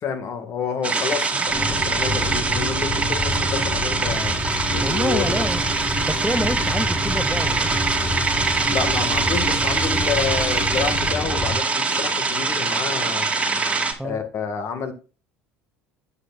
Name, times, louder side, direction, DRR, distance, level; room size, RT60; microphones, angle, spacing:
voice 1, 0.0-4.4 4.7-5.5 8.7-13.3 14.0-14.9, left 6 dB, 50° left, 1.9 m, -29 dB
sound 1, 0.8-13.9, right 4 dB, 20° right, 1.9 m, -23 dB
sound 2, 1.5-11.6, left 1 dB, 30° left, 2.0 m, -28 dB
voice 2, 4.8-5.6 6.1-7.8 14.0-14.2, right 1 dB, 5° right, 0.5 m, -27 dB
8.5 x 8.0 x 2.5 m
hypercardioid pair, 75°, 6 cm